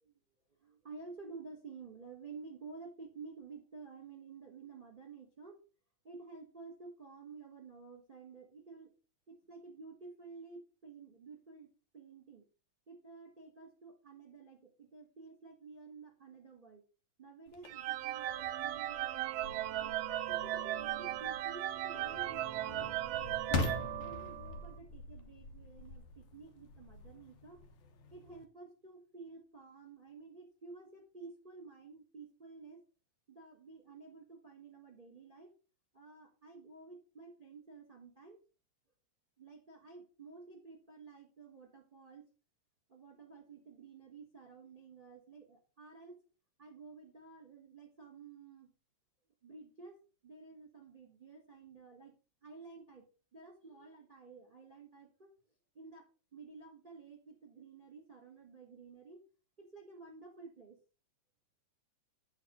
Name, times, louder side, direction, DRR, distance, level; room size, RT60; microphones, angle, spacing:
voice 1, 0.6-5.6 6.0-8.9 9.3-12.4 12.9-16.8 17.2-23.6 24.0-27.6 28.1-32.8 33.3-35.5 35.9-38.4 39.4-42.2 42.9-46.2 46.6-48.7 49.4-50.0 50.2-52.1 52.4-55.3 55.7-59.2 59.6-60.8, right 4 dB, 25° right, 1 dB, 1.3 m, -52 dB
sound 1, 17.5-28.4, left 3 dB, 75° left, 2.5 m, -44 dB
sound 2, 17.7-24.7, right 14 dB, 80° right, 1.5 m, -37 dB
8.8 x 5.0 x 5.1 m, 0.34 s
omnidirectional pair, 3.3 m